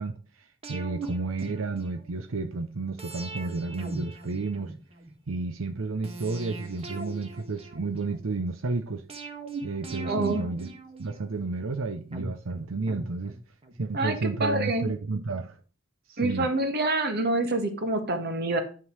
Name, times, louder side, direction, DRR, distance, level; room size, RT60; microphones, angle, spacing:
voice 1, 0.0-4.7 5.3-9.0 9.6-10.7 11.0-13.4 13.8-15.6 16.1-16.5, right 3 dB, 90° right, 0.7 m, -31 dB
sound 1, 0.6-2.2 3.0-5.1 6.0-8.3 9.1-11.5 12.1-13.8 14.1-14.2, right 3 dB, 30° right, 1.5 m, -40 dB
voice 2, 10.0-10.4 13.9-14.9 16.2-18.6, right 2 dB, 55° right, 1.7 m, -27 dB
9.8 x 3.8 x 6.1 m
head